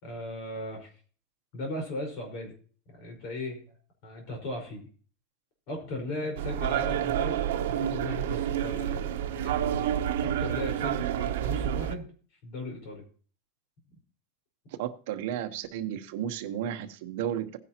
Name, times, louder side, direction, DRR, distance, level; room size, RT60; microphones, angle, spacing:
voice 1, 0.0-0.9 1.5-2.5 2.9-3.8 4.0-4.9 5.7-7.4 7.7-9.1 9.4-9.8 10.2-12.1 12.4-13.0, left 2 dB, 45° left, 2 dB, 5.0 m, -37 dB
sound 1, 6.4-11.9, right 10 dB, 85° right, 0.9 m, -29 dB
voice 2, 14.8-17.6, right 10 dB, 55° right, 6 dB, 1.1 m, -33 dB
16.5 x 10.0 x 3.0 m, 0.42 s
supercardioid pair, 175°, 0 cm